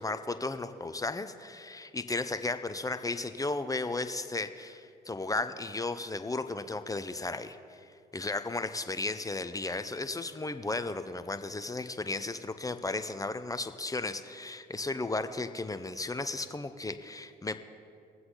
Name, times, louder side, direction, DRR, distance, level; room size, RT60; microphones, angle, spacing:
voice 1, 0.0-17.6, left 2 dB, 15° left, 10 dB, 0.8 m, -35 dB
22.5 x 7.8 x 3.9 m, 2.4 s
hypercardioid pair, 55°, 20 cm